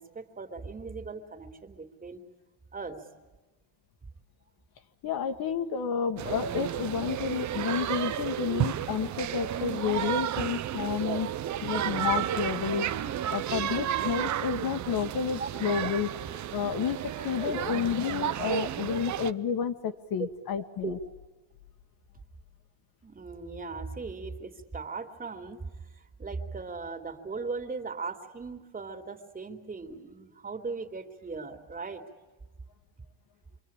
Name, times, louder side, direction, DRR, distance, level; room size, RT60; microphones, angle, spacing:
voice 1, 0.0-2.2 2.7-3.0 9.2-9.4 10.0-10.1 11.0-11.1 11.7-11.8 15.4-15.7 17.4-17.7 18.1-18.6 18.9-19.0 20.2-20.3 20.8-21.0 23.0-25.7 26.2-32.0, right 4 dB, 20° right, 6 dB, 3.2 m, -38 dB
voice 2, 5.0-11.3 11.6-21.0, left 7 dB, 50° left, 6 dB, 1.7 m, -31 dB
sound 1, 6.2-19.3, right 11 dB, 40° right, 0.8 m, -32 dB
27.5 x 24.0 x 8.9 m, 1.2 s
cardioid pair, 125°, 46 cm